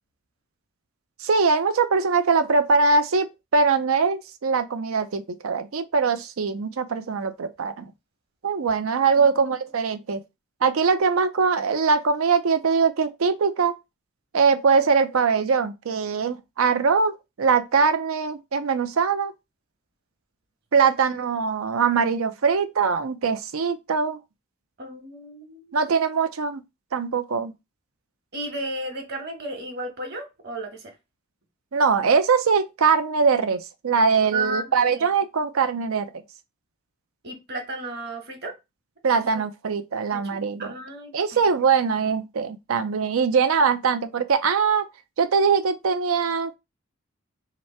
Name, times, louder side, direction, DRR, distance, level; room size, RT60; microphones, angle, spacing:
voice 1, 1.2-7.9 8.4-10.2 10.6-13.7 14.3-19.3 20.7-24.2 25.7-26.6 26.9-27.5 31.7-36.1 39.0-40.7 41.1-44.9 45.2-46.6, right 5 dB, 80° right, 0.5 m, -22 dB
voice 2, 24.8-25.9 28.3-30.9 34.3-35.1 37.2-38.5 39.3-39.4 40.1-41.5, right 2 dB, 50° right, 1.2 m, -34 dB
3.2 x 3.0 x 4.3 m
head